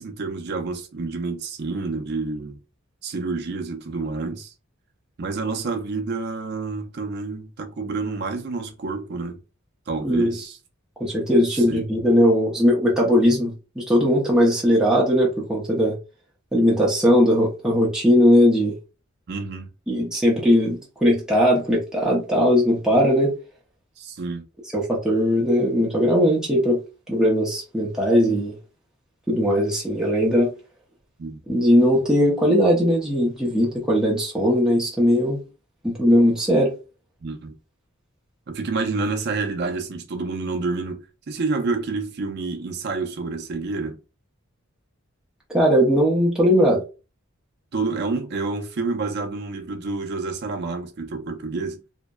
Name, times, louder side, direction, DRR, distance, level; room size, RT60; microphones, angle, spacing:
voice 1, 0.0-2.6 3.0-4.5 5.2-9.4 9.9-10.6 11.4-11.9 19.3-19.7 24.0-24.5 31.2-31.4 37.2-37.6 38.5-44.0 47.7-51.8, right 3 dB, 50° right, 0.5 m, -28 dB
voice 2, 10.0-10.4 11.0-16.0 16.5-18.8 19.9-23.3 24.7-26.8 27.1-28.5 29.3-30.5 31.5-35.4 35.8-36.7 45.5-46.8, equal, 5° right, 0.6 m, -19 dB
2.7 x 2.1 x 2.2 m
head